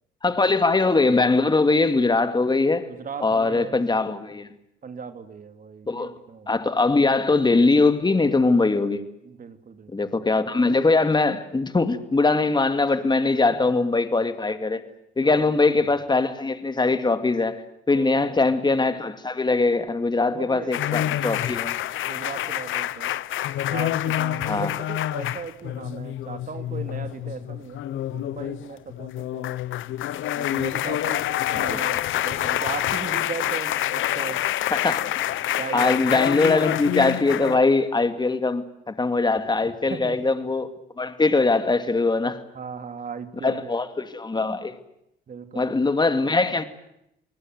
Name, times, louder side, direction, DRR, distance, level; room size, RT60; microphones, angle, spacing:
voice 1, 0.2-2.9 3.2-4.5 5.9-6.1 6.5-9.0 9.9-14.8 15.2-21.8 24.5-24.7 31.5-31.8 34.7-35.2 35.7-42.4 43.4-44.8 45.5-46.6, left 3 dB, 20° left, 9 dB, 2.4 m, -22 dB
voice 2, 2.9-3.8 4.8-6.6 9.2-10.1 15.2-15.5 17.9-18.4 20.3-21.2 22.1-23.1 23.7-29.5 30.3-34.4 35.6-35.9 39.9-40.2 42.5-43.7 45.3-45.7, right 6 dB, 45° right, 8 dB, 2.9 m, -37 dB
sound 1, 20.7-37.6, left 13 dB, 80° left, 1.0 m, -27 dB
28.5 x 20.0 x 8.0 m, 0.81 s
cardioid pair, 90°, 20 cm